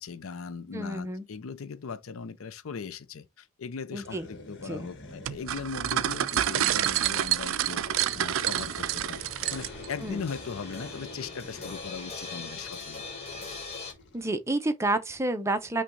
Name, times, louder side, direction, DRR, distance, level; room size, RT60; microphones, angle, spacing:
voice 1, 0.0-7.8 8.1-9.2 9.5-13.0, left 5 dB, 90° left, 0.5 m, -39 dB
voice 2, 0.7-1.2 3.9-4.3 4.6-4.9 10.0-10.2 14.1-15.8, right 2 dB, 15° right, 0.6 m, -29 dB
sound 1, 4.0-14.3, left 2 dB, 60° left, 1.1 m, -47 dB
sound 2, 5.3-9.9, right 11 dB, 70° right, 0.3 m, -28 dB
sound 3, 8.3-13.9, left 4 dB, 30° left, 1.4 m, -42 dB
5.7 x 2.3 x 3.8 m
head